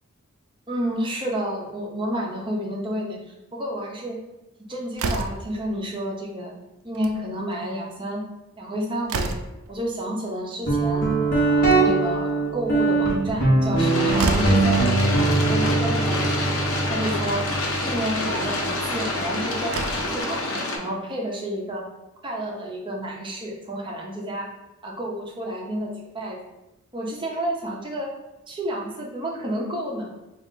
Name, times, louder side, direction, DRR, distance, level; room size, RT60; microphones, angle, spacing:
voice 1, 0.7-4.2 4.7-6.5 6.8-8.2 8.6-9.3 9.7-11.1 11.5-14.9 15.4-16.5 16.9-17.4 17.8-19.8 20.1-21.9 22.2-24.5 24.8-26.4 26.9-28.1 28.5-30.1, right 1 dB, 25° right, -2 dB, 0.6 m, -30 dB
Slam, 4.9-5.6 6.8-7.2 7.5-7.6 7.9-8.0 8.5-9.7 11.4-12.1 13.7-13.8 14.1-14.7 15.8-15.9 16.3-16.4 17.2-17.4 19.1-19.2 19.6-20.2, right 3 dB, 70° right, 0.4 m, -29 dB
Guitar, 10.7-20.1, right 3 dB, 45° left, 0.9 m, -23 dB
sound 1, 13.8-20.8, left 2 dB, 70° left, 0.7 m, -27 dB
3.7 x 2.4 x 3.6 m, 0.97 s
head